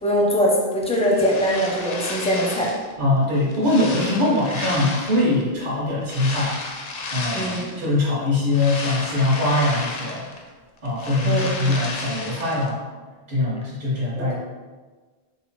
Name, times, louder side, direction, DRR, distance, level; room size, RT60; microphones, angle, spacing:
voice 1, 0.0-2.7 7.3-7.7 11.2-11.7 14.2-14.3, equal, 10° left, -3 dB, 0.4 m, -22 dB
sound 1, 0.9-2.9 3.3-5.4 6.0-7.9 8.3-10.5 10.8-12.7, left 3 dB, 65° left, 0.7 m, -33 dB
voice 2, 3.0-6.8 7.1-10.3 10.8-12.8 13.3-14.3, left 2 dB, 55° right, -6 dB, 0.8 m, -22 dB
3.6 x 2.7 x 3.1 m, 1.4 s
omnidirectional pair, 1.1 m